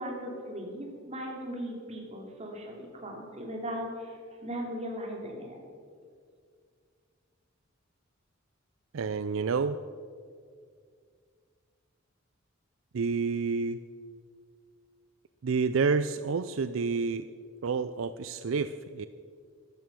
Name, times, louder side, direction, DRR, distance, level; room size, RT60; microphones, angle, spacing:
voice 1, 0.0-5.6, equal, 35° right, 0 dB, 2.9 m, -38 dB
voice 2, 8.9-9.8 12.9-13.8 15.4-17.3 17.6-19.1, right 5 dB, 75° right, 12 dB, 0.4 m, -29 dB
13.0 x 12.5 x 6.2 m, 2.1 s
head